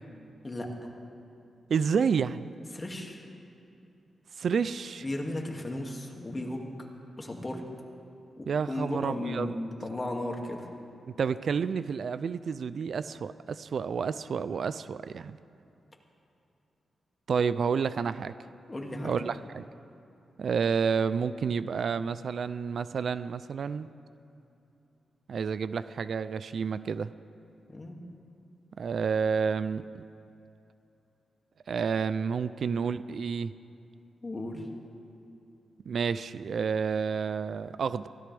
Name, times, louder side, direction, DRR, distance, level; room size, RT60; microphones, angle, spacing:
voice 1, 1.7-2.5 4.4-5.0 8.5-9.6 11.2-15.4 17.3-18.3 19.0-19.6 20.4-23.9 25.3-27.1 28.8-29.9 31.7-33.5 35.9-38.1, right 6 dB, 65° right, 14 dB, 0.4 m, -30 dB
voice 2, 2.7-3.2 5.0-6.7 7.2-7.6 8.4-10.7 18.7-19.1 27.7-28.0 34.2-34.7, left 1 dB, 25° left, 0 dB, 2.3 m, -35 dB
24.0 x 16.5 x 3.5 m, 2.8 s
cardioid pair, 90°, 0 cm